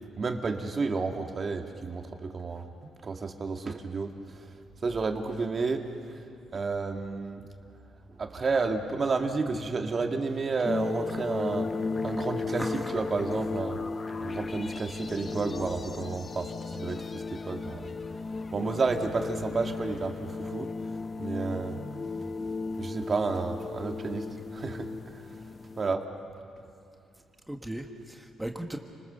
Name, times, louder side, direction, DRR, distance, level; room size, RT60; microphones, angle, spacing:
voice 1, 0.2-2.7 3.0-4.1 4.8-5.9 6.5-7.4 8.2-11.7 12.0-12.6 12.9-13.8 14.2-16.5 16.7-17.9 18.5-20.7 21.2-21.8 22.8-24.3 24.5-24.9 25.8-26.0, right 4 dB, 40° right, 4 dB, 2.1 m, -31 dB
sound 1, 10.6-25.9, left 4 dB, 35° left, 0.8 m, -35 dB
voice 2, 12.5-12.9 13.3-13.4 27.5-28.8, right 1 dB, 5° right, 3 dB, 1.6 m, -37 dB
29.5 x 20.5 x 6.9 m, 2.7 s
cardioid pair, 90°, 0 cm